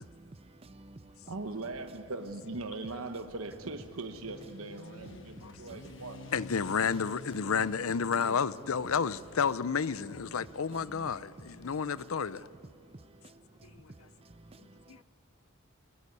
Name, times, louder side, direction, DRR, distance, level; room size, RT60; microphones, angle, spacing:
voice 1, 0.0-1.6 4.6-6.3 10.2-15.0, right 2 dB, 25° right, 0.6 m, -53 dB
Motorcycle, 1.0-12.7, left 2 dB, 60° left, 1.2 m, -52 dB
voice 2, 1.3-6.2 8.1-8.4, right 3 dB, 85° right, 1.1 m, -40 dB
voice 3, 6.3-12.5 13.6-13.9 14.9-15.0, left 6 dB, 80° left, 0.6 m, -31 dB
22.5 x 22.0 x 9.5 m
head